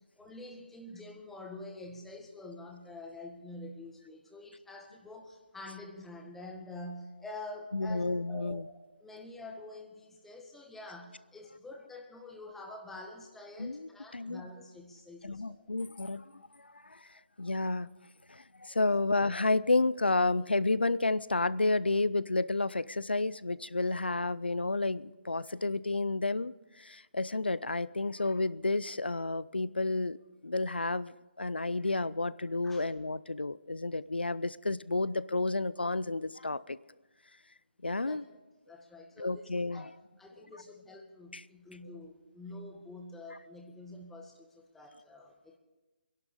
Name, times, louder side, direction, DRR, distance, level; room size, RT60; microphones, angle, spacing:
voice 1, 0.2-15.7 32.6-32.8 38.0-38.2 38.7-39.9 40.2-45.6, left 2 dB, 5° left, 1 dB, 1.7 m, -47 dB
voice 2, 7.7-8.7 13.6-14.4 15.2-17.9 18.3-30.2 30.4-36.8 37.8-38.2 39.2-39.9 41.3-41.4, left 2 dB, 85° left, 18 dB, 0.5 m, -31 dB
24.5 x 11.5 x 5.0 m, 1.1 s
figure-of-eight pair, 145°, 5 cm